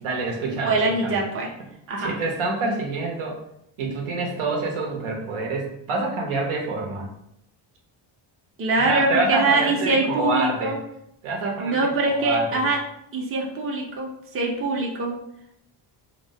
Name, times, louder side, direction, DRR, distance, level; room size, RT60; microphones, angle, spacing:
voice 1, 0.0-1.2 2.0-3.4 3.8-7.1 8.8-10.7 11.2-12.6, right 3 dB, 80° right, 0 dB, 0.9 m, -27 dB
voice 2, 0.6-1.5 1.9-2.2 8.6-10.8 11.6-12.8 13.1-15.1, right 2 dB, 25° right, -2 dB, 0.6 m, -23 dB
2.9 x 2.1 x 2.7 m, 0.76 s
cardioid pair, 95°, 50 cm